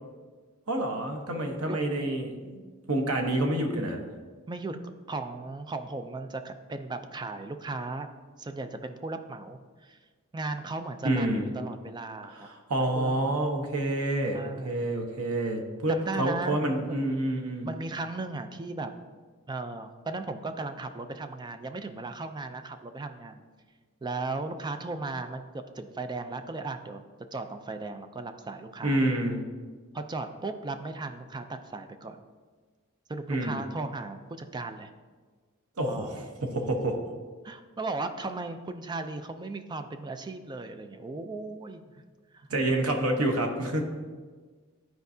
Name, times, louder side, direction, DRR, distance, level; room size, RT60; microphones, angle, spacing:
voice 1, 0.7-4.0 11.0-11.5 12.4-17.7 28.8-29.4 33.3-33.6 35.8-37.0 42.5-43.8, right 1 dB, 85° right, 3 dB, 1.0 m, -28 dB
voice 2, 5.1-8.1 8.4-10.0 10.3-12.5 12.9-13.3 14.3-14.9 15.9-17.0 17.6-18.9 19.5-23.4 24.0-27.0 27.3-29.0 29.9-32.2 33.1-34.9 35.9-36.2 37.4-41.8 42.3-42.5 43.0-43.3, right 3 dB, 20° right, 8 dB, 0.4 m, -36 dB
12.5 x 4.6 x 2.7 m, 1.5 s
head